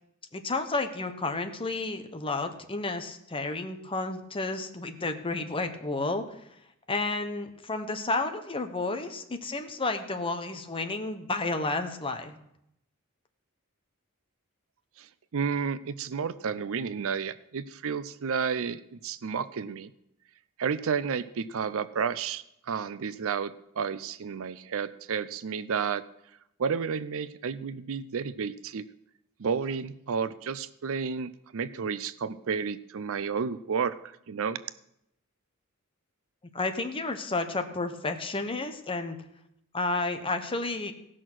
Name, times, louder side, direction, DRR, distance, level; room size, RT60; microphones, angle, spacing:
voice 1, 0.3-6.4 6.9-12.4 36.5-39.2 39.7-40.9, left 3 dB, 25° left, 7 dB, 1.0 m, -31 dB
voice 2, 15.3-19.9 20.6-26.0 26.6-28.8 29.4-34.0 34.3-34.6, right 6 dB, 65° right, 15 dB, 0.5 m, -31 dB
17.0 x 6.3 x 6.2 m, 0.79 s
head